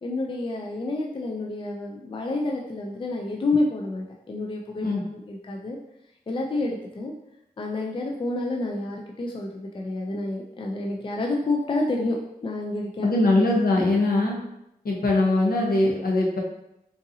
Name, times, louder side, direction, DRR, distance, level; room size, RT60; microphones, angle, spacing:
voice 1, 0.0-4.9 5.1-5.8 6.3-7.1 7.6-13.1, left 2 dB, 35° left, 0 dB, 0.4 m, -29 dB
voice 2, 13.0-14.4 14.8-16.4, left 2 dB, 70° left, -1 dB, 0.8 m, -21 dB
3.8 x 2.6 x 2.7 m, 0.83 s
wide cardioid pair, 90°, 16 cm